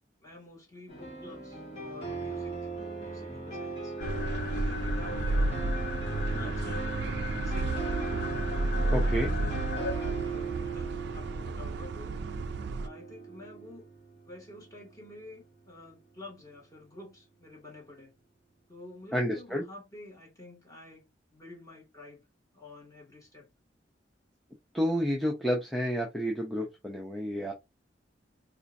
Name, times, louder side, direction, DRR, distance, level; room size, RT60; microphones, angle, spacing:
voice 1, 0.2-2.7 3.0-5.7 6.2-8.3 8.7-9.7 9.9-12.2 12.8-13.8 14.3-18.2 18.7-21.0 21.3-22.2 22.5-23.5, left 2 dB, 20° left, 2.0 m, -49 dB
sound 1, 0.9-14.8, right 3 dB, 35° left, 1.7 m, -38 dB
sound 2, 4.0-9.9, left 5 dB, 55° left, 0.5 m, -40 dB
sound 3, 4.0-12.9, right 2 dB, 65° right, 0.4 m, -32 dB
voice 2, 8.9-9.3 19.1-19.6 24.7-27.5, equal, ahead, 0.6 m, -30 dB
4.2 x 2.5 x 2.5 m
head